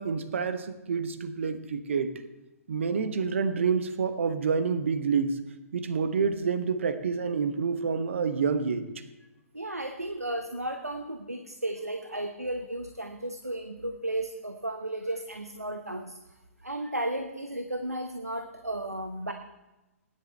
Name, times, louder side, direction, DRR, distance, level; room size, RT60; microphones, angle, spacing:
voice 1, 0.0-2.3 2.7-5.4 5.7-8.8, right 5 dB, 55° right, 10 dB, 1.0 m, -28 dB
voice 2, 9.5-16.2 16.6-19.3, right 1 dB, 85° right, 6 dB, 0.9 m, -34 dB
17.5 x 10.5 x 3.3 m, 1.0 s
figure-of-eight pair, 120°, 8 cm